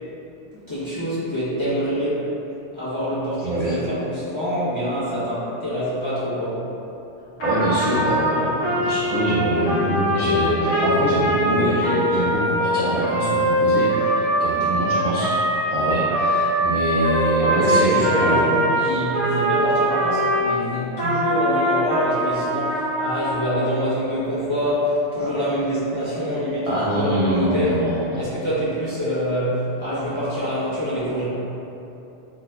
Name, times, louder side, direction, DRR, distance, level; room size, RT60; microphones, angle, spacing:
voice 1, 0.5-2.3 2.7-6.6 17.4-27.8 28.2-31.2, equal, 25° left, -12 dB, 0.7 m, -25 dB
voice 2, 3.4-3.8 7.4-15.4 15.7-18.6 25.2-25.3 26.7-28.2, right 1 dB, 60° right, -10 dB, 0.3 m, -24 dB
Trumpet, 7.4-20.5 20.9-23.5, right 1 dB, 65° left, 1.1 m, -22 dB
3.7 x 2.7 x 2.2 m, 3.0 s
omnidirectional pair, 1.3 m